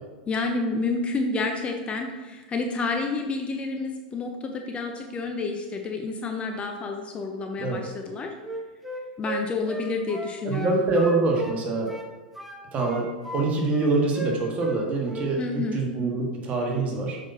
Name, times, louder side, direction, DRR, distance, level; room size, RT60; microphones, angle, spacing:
voice 1, 0.3-8.3 9.2-10.8 15.4-15.8, left 3 dB, 25° left, 4 dB, 0.7 m, -29 dB
Wind instrument woodwind instrument, 8.4-11.6 11.9-13.4 13.7-14.8 15.1-15.4, right 1 dB, 5° right, 1.0 m, -36 dB
voice 2, 10.4-11.9 12.7-13.1 13.3-17.2, right 3 dB, 30° right, -1 dB, 1.6 m, -25 dB
7.1 x 5.6 x 2.8 m, 1.3 s
figure-of-eight pair, 90°, 5 cm